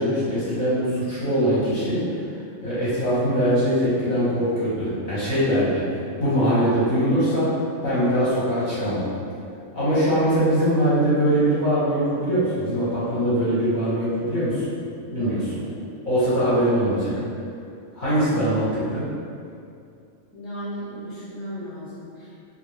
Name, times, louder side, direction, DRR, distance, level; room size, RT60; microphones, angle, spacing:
voice 1, 0.0-2.0 2.6-7.5 7.8-9.0 9.7-14.6 15.1-15.5 16.0-17.1 17.9-19.0, equal, 45° left, -11 dB, 0.7 m, -22 dB
voice 2, 15.1-15.8 20.3-22.4, equal, 15° left, -10 dB, 0.4 m, -36 dB
2.4 x 2.1 x 3.1 m, 2.5 s
omnidirectional pair, 1.4 m